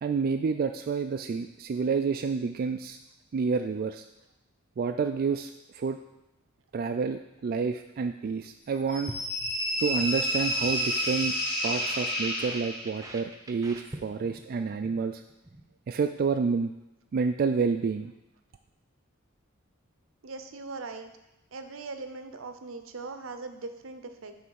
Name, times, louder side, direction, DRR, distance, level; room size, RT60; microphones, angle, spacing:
voice 1, 0.0-3.0 3.3-4.1 4.8-6.0 6.7-9.1 9.8-11.3 11.6-15.2 15.9-16.7 17.1-18.1, right 5 dB, 45° right, 6 dB, 0.3 m, -29 dB
sound 1, 8.9-13.1, equal, 55° left, 2.8 m, -30 dB
sound 2, 9.1-10.2 10.4-10.8 11.1-14.4 14.7-15.0 15.3-15.6, right 2 dB, 15° right, 0.7 m, -44 dB
voice 2, 20.2-21.1 21.5-24.3, right 3 dB, 75° right, 8 dB, 0.7 m, -40 dB
9.3 x 3.4 x 6.3 m, 0.92 s
head